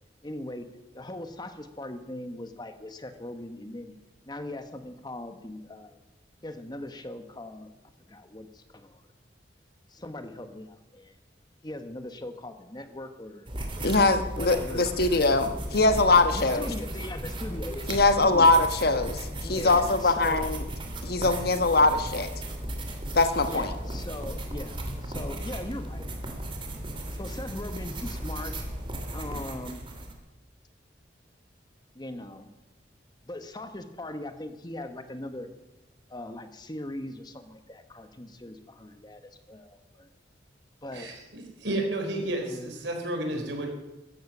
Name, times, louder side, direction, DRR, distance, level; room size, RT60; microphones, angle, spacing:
voice 1, 0.2-0.7 0.9-4.0 4.3-6.0 6.4-7.7 8.1-9.0 9.9-11.2 11.6-13.9 14.3-14.9 16.3-17.9 18.2-18.5 19.4-20.4 23.4-26.1 27.2-28.5 29.1-29.8 31.9-32.5 33.2-35.5 36.1-39.2 39.5-40.1 40.8-41.1 42.4-42.7, left 1 dB, 25° left, 8 dB, 1.2 m, -39 dB
sound 1, 13.5-30.1, right 1 dB, 30° right, 2.4 m, -36 dB
voice 2, 13.8-16.6 17.9-20.6 21.0-22.3 23.1-23.7, left 3 dB, 55° left, 8 dB, 1.3 m, -22 dB
voice 3, 41.6-43.7, right 1 dB, 80° right, 3 dB, 4.1 m, -31 dB
15.5 x 13.5 x 6.1 m, 1.0 s
head